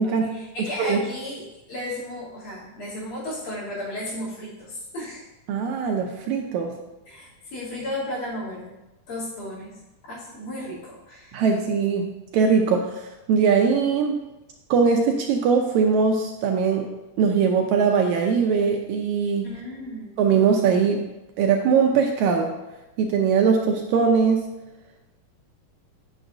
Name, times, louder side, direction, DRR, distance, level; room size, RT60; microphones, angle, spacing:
voice 1, 0.0-1.4 1.7-5.2 7.1-8.7 9.1-9.7 10.0-11.4 19.4-20.1, left 1 dB, 70° left, -7 dB, 4.2 m, -34 dB
voice 2, 5.5-6.7 11.3-14.2 14.7-16.9 17.2-19.5 20.2-21.1 21.4-22.5 23.0-24.5, right 6 dB, 80° right, 2 dB, 1.8 m, -21 dB
8.9 x 6.1 x 2.5 m, 1.0 s
omnidirectional pair, 3.7 m